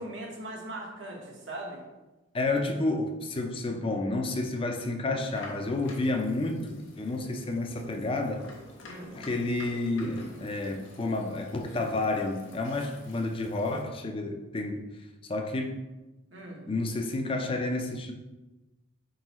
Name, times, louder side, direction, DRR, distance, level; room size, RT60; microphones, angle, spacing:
voice 1, 0.0-1.8 8.8-9.1 16.3-16.6, right 1 dB, 70° right, -1 dB, 1.0 m, -40 dB
voice 2, 2.3-8.5 9.1-14.9 15.2-15.8 16.7-18.1, left 2 dB, 25° left, 4 dB, 0.4 m, -30 dB
sound 1, 5.2-13.8, left 2 dB, 75° left, 1.0 m, -49 dB
4.7 x 3.8 x 3.0 m, 1.1 s
head